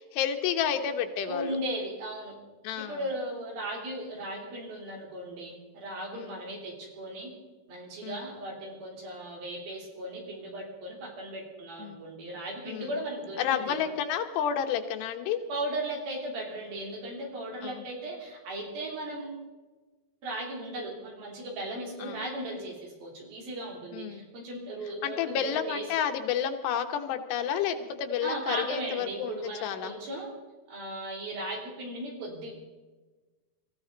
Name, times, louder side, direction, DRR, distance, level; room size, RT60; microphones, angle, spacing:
voice 1, 0.0-1.6 2.6-3.0 6.1-6.4 8.0-8.3 11.8-12.0 12.7-12.9 13.4-15.4 17.6-17.9 22.0-22.2 23.9-24.3 25.0-29.9, left 8 dB, 85° left, 6 dB, 3.3 m, -30 dB
voice 2, 1.3-2.4 2.8-7.3 7.7-13.8 15.5-19.4 20.2-25.8 28.2-30.3 30.7-32.5, right 1 dB, 60° right, 0 dB, 5.0 m, -37 dB
23.0 x 15.0 x 4.0 m, 1.3 s
omnidirectional pair, 4.8 m